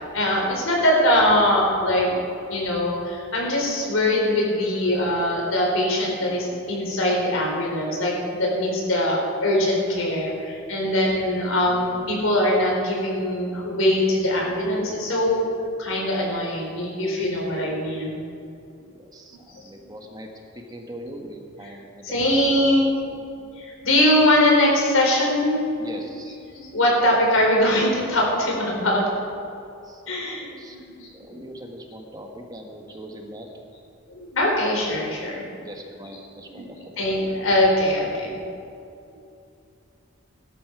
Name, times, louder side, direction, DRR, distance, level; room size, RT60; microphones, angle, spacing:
voice 1, 0.1-2.2 2.5-15.5 15.8-18.2 19.5-19.6 21.6-21.8 22.0-23.1 23.6-25.7 26.0-26.1 26.5-29.1 30.0-31.1 34.1-35.4 36.0-36.2 36.5-36.6 37.0-38.4, left 1 dB, 85° left, -2 dB, 4.4 m, -22 dB
voice 2, 10.8-11.2 18.8-20.3 20.5-22.4 25.8-26.4 29.8-30.7 31.1-33.5 35.6-37.1, right 1 dB, 20° right, 2 dB, 1.4 m, -41 dB
17.5 x 12.5 x 4.8 m, 2.6 s
head